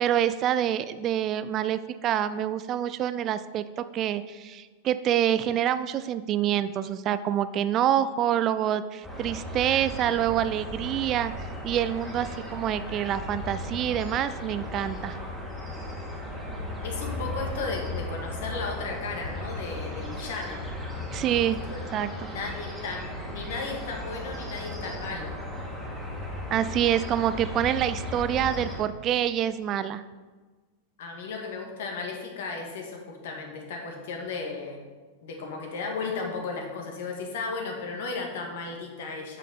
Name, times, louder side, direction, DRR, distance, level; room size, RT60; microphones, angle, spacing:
voice 1, 0.0-15.2 21.1-21.6 21.9-22.3 26.5-30.0, right 10 dB, 35° right, 13 dB, 0.4 m, -26 dB
sound 1, 9.0-28.8, left 1 dB, ahead, 2.3 m, -36 dB
voice 2, 16.8-20.6 21.7-21.8 22.3-25.3 31.0-34.8 35.2-39.4, left 4 dB, 55° left, 2 dB, 1.9 m, -35 dB
8.6 x 7.3 x 4.2 m, 1.3 s
figure-of-eight pair, 90°, 0 cm